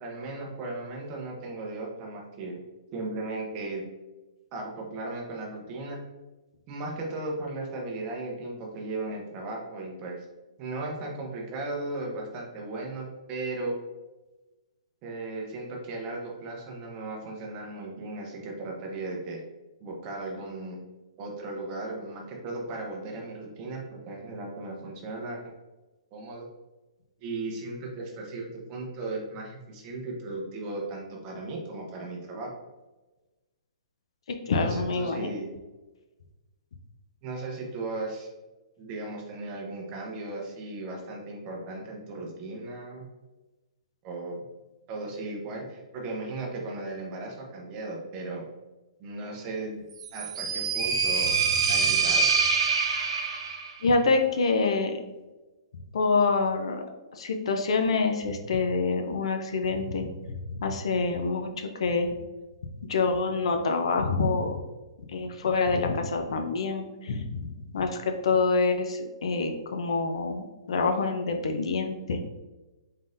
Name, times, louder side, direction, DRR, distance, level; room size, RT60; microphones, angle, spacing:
voice 1, 0.0-2.6 2.9-3.8 4.5-6.0 6.7-10.2 10.6-13.8 15.0-19.4 19.8-20.8 21.2-25.4 26.1-26.5 27.2-32.5 34.4-35.5 37.2-38.3 38.8-43.1 44.0-44.4 44.9-48.4 49.0-49.8 50.1-51.4 51.7-52.3, right 2 dB, 25° right, 0 dB, 0.7 m, -36 dB
voice 2, 34.3-35.3 53.8-55.0 55.9-56.8 57.1-62.1 62.9-64.6 65.1-67.4 67.7-72.2, left 4 dB, 65° left, 5 dB, 0.5 m, -26 dB
sound 1, 50.0-53.7, right 5 dB, 60° right, 0.6 m, -25 dB
3.8 x 3.7 x 2.5 m, 1.1 s
hypercardioid pair, 160°, 3 cm